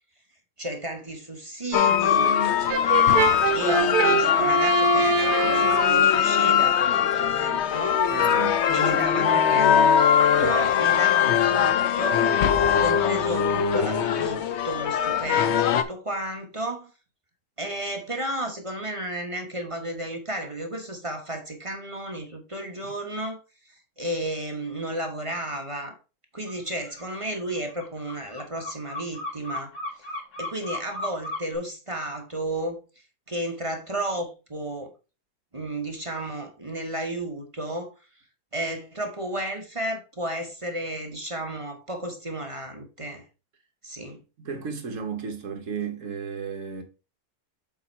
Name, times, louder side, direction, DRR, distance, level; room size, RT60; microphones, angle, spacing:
voice 1, 0.6-2.3 3.5-8.0 8.7-9.9 10.4-12.4 12.8-16.9 17.6-23.4 23.7-25.9 26.3-29.7 30.4-32.8 33.3-34.9 35.5-37.9 38.5-43.3 43.8-44.2, right 1 dB, 25° right, 1.0 m, -33 dB
sound 1, 1.7-15.8, left 8 dB, 60° left, 0.7 m, -21 dB
Brass instrument, 2.7-6.0, right 5 dB, 75° right, 1.2 m, -24 dB
voice 2, 8.1-9.3 22.8-22.9 44.4-46.8, right 6 dB, 55° right, 1.4 m, -34 dB
sound 2, 26.5-26.6 26.8-31.6, left 2 dB, 80° left, 2.9 m, -35 dB
7.4 x 4.4 x 4.4 m
omnidirectional pair, 1.7 m